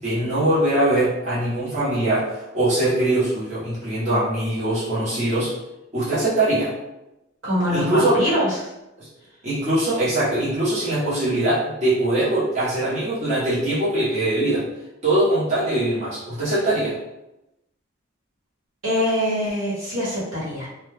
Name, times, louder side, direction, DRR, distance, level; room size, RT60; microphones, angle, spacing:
voice 1, 0.0-5.5 5.9-6.7 7.7-8.2 9.0-9.1 9.4-14.6 15.0-16.9, right 1 dB, 35° right, -10 dB, 0.8 m, -22 dB
voice 2, 7.4-8.7 18.8-20.7, equal, 80° right, -7 dB, 1.1 m, -23 dB
2.2 x 2.2 x 3.2 m, 0.93 s
head